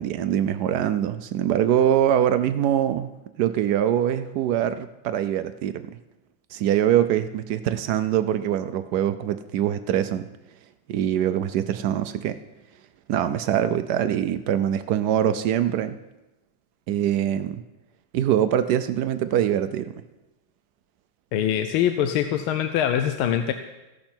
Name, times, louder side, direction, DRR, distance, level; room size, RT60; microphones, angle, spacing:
voice 1, 0.0-3.1 3.4-5.9 6.5-10.3 10.9-12.4 13.1-16.0 16.9-17.6 18.1-19.9, right 10 dB, 75° right, 11 dB, 0.9 m, -23 dB
voice 2, 21.3-23.5, left 10 dB, 85° left, 8 dB, 1.5 m, -23 dB
14.5 x 11.0 x 4.4 m, 1.0 s
omnidirectional pair, 2.2 m